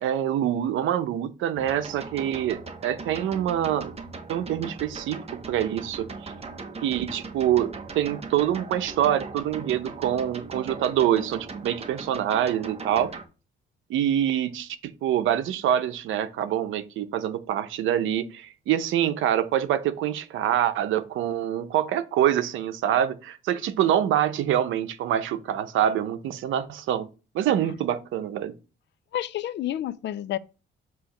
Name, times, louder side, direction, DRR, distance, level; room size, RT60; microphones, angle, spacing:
voice 1, 0.0-3.9 4.3-6.3 6.8-13.1 13.9-27.1 27.3-28.5, right 10 dB, 85° right, 0.8 m, -25 dB
sound 1, 1.6-13.2, right 4 dB, 30° right, 1.2 m, -39 dB
voice 2, 29.1-30.4, left 12 dB, 65° left, 0.5 m, -29 dB
7.7 x 3.1 x 5.0 m
cardioid pair, 90°, 20 cm